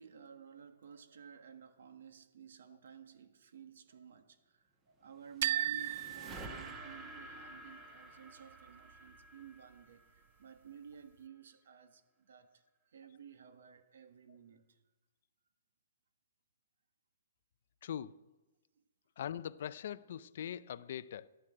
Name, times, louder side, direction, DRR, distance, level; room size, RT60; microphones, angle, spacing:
voice 1, 0.0-14.8 18.7-18.8, right 7 dB, 65° right, 1.6 m, -54 dB
sound 1, 5.0-10.4, right 1 dB, 10° right, 1.3 m, -51 dB
sound 2, 5.4-7.3, right 12 dB, 45° right, 0.4 m, -36 dB
voice 2, 17.8-18.2 19.2-21.3, left 9 dB, 50° left, 0.5 m, -42 dB
13.5 x 11.5 x 7.8 m
hypercardioid pair, 175°, 0 cm